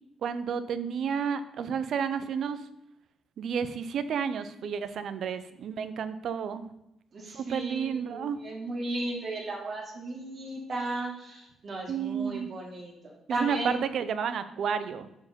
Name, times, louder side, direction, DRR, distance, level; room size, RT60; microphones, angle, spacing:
voice 1, 0.2-2.6 3.4-6.7 7.3-8.4 11.9-12.5 13.3-15.1, right 7 dB, 65° right, 12 dB, 0.6 m, -31 dB
voice 2, 7.1-12.9 13.3-13.8, right 2 dB, 50° right, -1 dB, 1.9 m, -35 dB
6.8 x 4.6 x 5.2 m, 0.84 s
cardioid pair, 90°, 0 cm